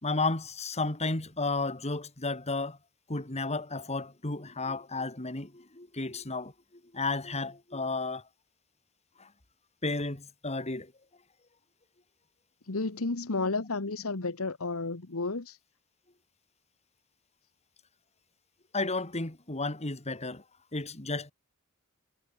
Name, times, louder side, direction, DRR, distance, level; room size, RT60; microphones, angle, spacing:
voice 1, 0.0-2.8 3.1-6.5 6.9-8.2 9.2-9.3 9.8-10.9 18.7-20.4 20.7-21.3, left 3 dB, 30° left, 2.6 m, -32 dB
voice 2, 12.7-15.6, left 3 dB, 70° left, 1.4 m, -32 dB
head